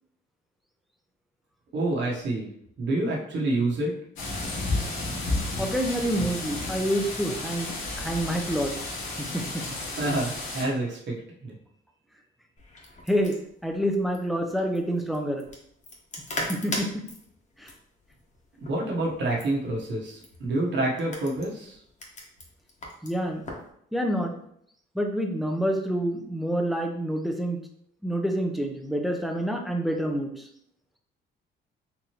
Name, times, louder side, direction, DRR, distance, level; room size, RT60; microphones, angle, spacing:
voice 1, 1.7-2.5 2.8-4.0 9.9-11.2 11.4-11.5 18.6-21.8, right 2 dB, 65° right, -2 dB, 1.1 m, -27 dB
sound 1, 4.2-10.6, left 2 dB, 70° left, 1.2 m, -32 dB
voice 2, 5.6-8.7 9.2-9.6 13.1-13.4 13.6-15.4 16.5-16.9 17.6-17.7 23.0-23.4 23.9-24.4 24.9-27.6 28.0-30.5, equal, ahead, 3 dB, 0.6 m, -27 dB
sound 2, 12.6-23.7, left 1 dB, 40° left, 1.0 m, -40 dB
3.8 x 3.0 x 2.9 m, 0.68 s
cardioid pair, 90°, 20 cm